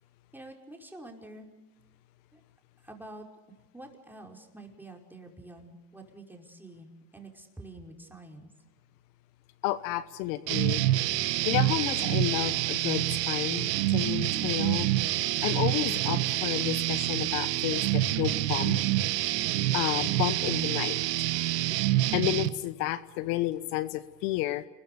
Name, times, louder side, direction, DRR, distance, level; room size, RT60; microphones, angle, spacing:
voice 1, 0.3-1.5 2.3-2.4 2.8-3.3 3.7-8.5, right 2 dB, 5° right, 1 dB, 5.3 m, -47 dB
voice 2, 9.6-10.8 11.4-14.9 15.4-18.8 19.7-21.0 22.1-24.7, left 15 dB, 70° left, 15 dB, 1.2 m, -31 dB
sound 1, 10.5-22.5, right 15 dB, 85° right, 1.3 m, -27 dB
28.5 x 21.5 x 6.9 m, 1.3 s
supercardioid pair, 100°, 47 cm